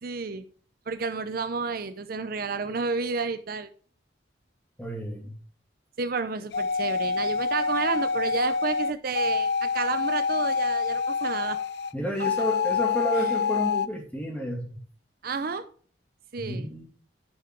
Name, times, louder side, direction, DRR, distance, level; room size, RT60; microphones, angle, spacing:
voice 1, 0.0-0.4 0.9-3.7 6.0-11.6 13.2-13.3 15.2-15.7 16.3-16.7, right 4 dB, 55° right, 10 dB, 0.6 m, -31 dB
voice 2, 4.8-5.3 11.9-14.8 16.4-16.8, equal, 10° left, 0 dB, 2.5 m, -31 dB
sound 1, 6.5-11.9 12.2-13.9, left 5 dB, 60° left, 0.5 m, -26 dB
9.7 x 5.8 x 4.7 m, 0.43 s
head